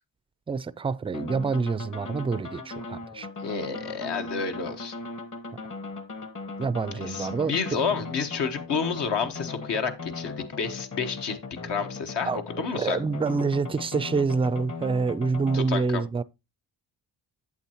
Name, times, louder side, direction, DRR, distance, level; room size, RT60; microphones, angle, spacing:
voice 1, 0.5-3.3 6.6-7.5 12.3-12.4 12.7-16.2, right 4 dB, 15° right, 0.3 m, -27 dB
sound 1, 1.1-15.6, left 3 dB, 45° left, 1.4 m, -38 dB
voice 2, 3.4-4.9 6.9-11.4 11.6-13.0 15.5-16.0, left 5 dB, 70° left, 1.4 m, -30 dB
8.4 x 7.7 x 2.9 m
cardioid pair, 75°, 43 cm